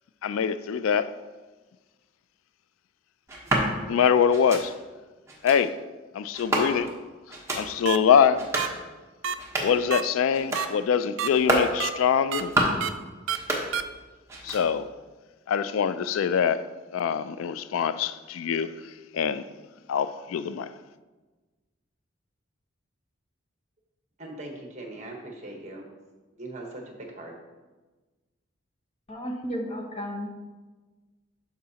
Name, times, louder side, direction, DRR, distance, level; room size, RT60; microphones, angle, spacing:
voice 1, 0.2-1.1 3.9-4.7 5.4-5.7 6.1-6.9 7.5-8.5 9.6-12.5 14.4-14.9 15.5-16.6 16.9-18.7 19.1-19.4 19.9-20.7, left 7 dB, 90° left, 0.3 m, -24 dB
sound 1, 3.3-3.7 4.3-4.6 5.3-5.6 6.3-7.0 7.3-7.6 8.3-8.7 9.3-9.8 10.3-10.7 11.3-11.7 12.3-12.8 13.3-14.0 14.3-14.9, right 1 dB, 15° right, 1.0 m, -28 dB
sound 2, 7.8-8.0 8.6-8.7 9.2-9.3 9.9-10.0 10.5-10.7 11.2-11.3 11.8-11.9 12.3-12.4 12.8-12.9 13.3-13.4 13.7-13.8, right 8 dB, 75° right, 0.4 m, -28 dB
voice 2, 24.2-25.9 26.4-27.4, right 2 dB, 35° right, 1.1 m, -40 dB
voice 3, 29.1-30.3, equal, 30° left, 0.9 m, -33 dB
11.5 x 4.8 x 2.8 m
head